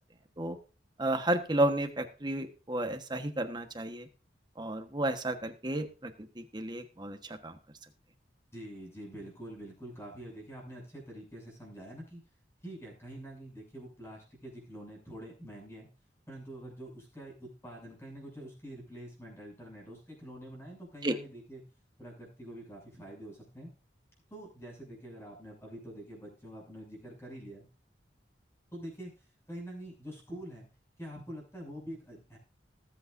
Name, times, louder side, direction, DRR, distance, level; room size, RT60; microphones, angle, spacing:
voice 1, 1.0-4.1 4.6-7.6 21.0-21.1, right 1 dB, 25° right, 7 dB, 1.3 m, -32 dB
voice 2, 8.5-12.2 12.6-15.9 16.3-21.6 22.0-23.7 24.3-27.7 28.7-30.7 31.0-32.4, right 1 dB, 15° left, -1 dB, 6.9 m, -46 dB
20.0 x 8.4 x 2.6 m, 0.36 s
head